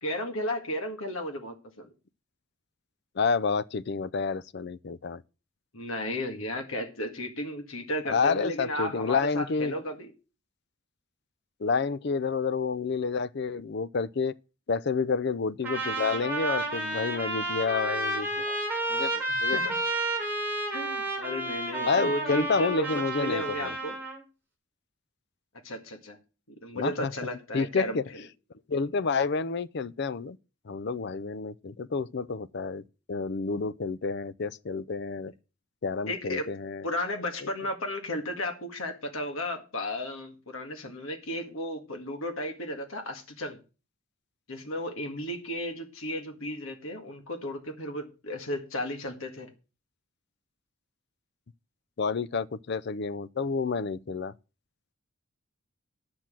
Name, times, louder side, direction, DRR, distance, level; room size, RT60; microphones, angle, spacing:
voice 1, 0.0-1.9 5.7-10.1 19.3-19.6 20.7-23.9 25.6-26.2 26.6-28.2 36.1-36.5 36.8-43.6 44.5-49.5, left 1 dB, 75° left, 1.8 m, -34 dB
voice 2, 3.2-5.2 8.1-9.7 11.6-14.3 14.7-18.6 18.9-19.6 21.9-23.7 26.7-27.1 27.5-28.1 28.7-30.4 30.7-32.8 33.1-35.3 35.8-36.8 37.4-37.5 52.0-54.3, left 4 dB, 50° left, 0.5 m, -29 dB
Trumpet, 15.6-24.2, right 2 dB, 10° right, 4.0 m, -31 dB
10.5 x 6.1 x 7.5 m
head